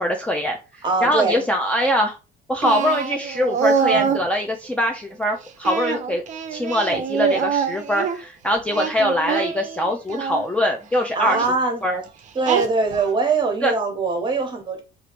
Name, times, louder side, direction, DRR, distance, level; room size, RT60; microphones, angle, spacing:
voice 1, 0.0-2.2 2.5-6.2 6.5-11.5 11.8-12.0 13.6-13.7, left 1 dB, 5° left, 0.4 m, -23 dB
voice 2, 0.8-1.4 3.9-4.0 11.1-11.8 12.3-14.8, right 4 dB, 25° right, 1.0 m, -22 dB
Singing, 2.6-4.3 5.6-8.2 8.7-10.4 11.2-11.5 12.4-13.1, right 6 dB, 45° right, 0.5 m, -24 dB
3.0 x 2.5 x 2.9 m
cardioid pair, 110°, 17 cm